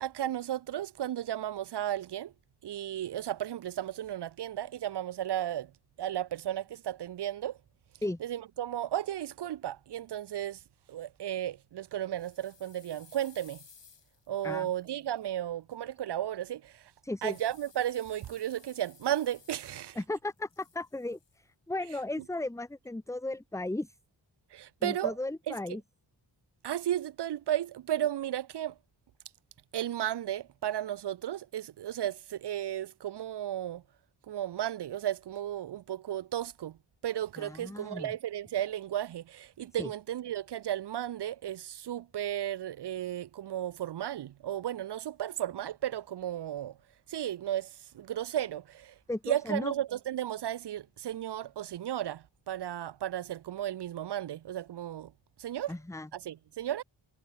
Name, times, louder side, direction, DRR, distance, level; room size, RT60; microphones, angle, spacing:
voice 1, 0.0-2.3 2.6-5.7 6.0-7.6 8.2-10.6 10.9-13.6 14.3-16.9 17.2-20.0 24.5-25.2 25.5-25.6 26.6-28.8 29.7-33.8 34.3-36.8 37.0-46.8 47.1-49.0 49.2-55.1 55.4-55.7 56.1-56.8, right 11 dB, 60° right, 0.5 m, -34 dB
sound 1, 12.2-15.2 17.2-20.0 20.3-21.4, left 6 dB, 65° left, 3.5 m, -58 dB
voice 2, 17.0-17.4 20.0-23.9 24.8-25.8 37.4-38.1 39.8-39.9 49.1-49.7 55.7-56.1, left 2 dB, 5° left, 0.7 m, -35 dB
wide cardioid pair, 100°, 47 cm